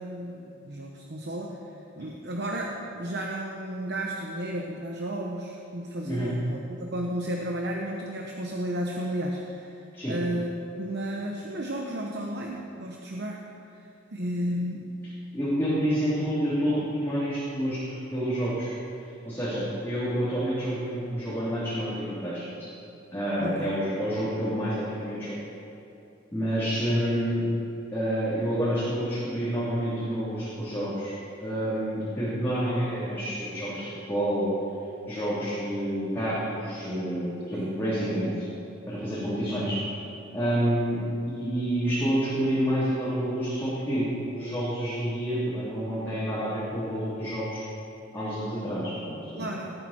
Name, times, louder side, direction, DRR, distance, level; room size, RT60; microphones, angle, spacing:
voice 1, 0.0-1.6 2.0-9.7 10.1-13.4 14.1-14.9 23.4-23.7 37.5-37.6 49.3-49.7, right 1 dB, 60° right, 0 dB, 1.0 m, -33 dB
voice 2, 15.3-17.8 18.1-18.7 19.2-22.4 23.1-25.3 26.3-27.4 27.9-31.1 31.4-34.5 35.1-38.4 38.9-39.8 40.3-47.6 48.1-49.5, equal, 10° left, -12 dB, 3.2 m, -28 dB
19.0 x 9.2 x 4.4 m, 2.7 s
head